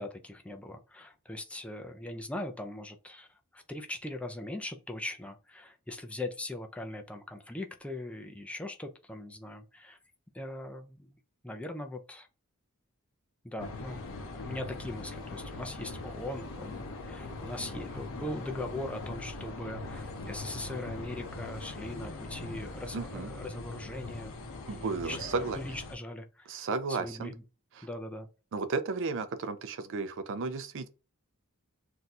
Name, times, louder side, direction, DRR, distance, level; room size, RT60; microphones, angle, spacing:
voice 1, 0.0-10.0 10.3-11.2 11.4-12.3 13.4-14.0 14.3-24.3 24.7-25.2 25.5-26.6 26.9-27.4 27.8-28.3, left 1 dB, 5° left, 0.3 m, -40 dB
sound 1, 13.6-26.0, left 2 dB, 65° left, 0.6 m, -41 dB
voice 2, 22.9-23.3 24.7-25.6 26.5-27.3 27.8-27.9 28.5-30.9, right 4 dB, 60° right, 0.4 m, -33 dB
2.6 x 2.3 x 4.0 m
head